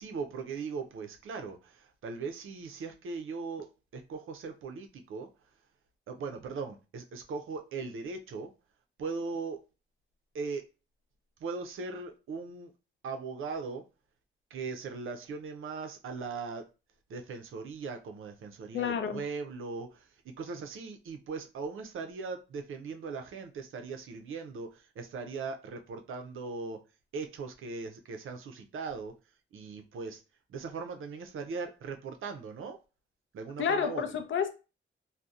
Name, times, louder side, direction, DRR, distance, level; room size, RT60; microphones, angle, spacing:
voice 1, 0.0-5.3 6.1-8.5 9.0-9.6 10.3-10.7 11.4-12.7 13.0-13.8 14.5-16.6 17.1-26.8 27.1-29.2 29.5-30.2 30.5-32.8 33.3-34.0, right 4 dB, 85° right, 0.4 m, -39 dB
voice 2, 18.7-19.2 33.6-34.5, left 7 dB, 75° left, 0.4 m, -30 dB
2.6 x 2.0 x 2.3 m
wide cardioid pair, 140°, 20 cm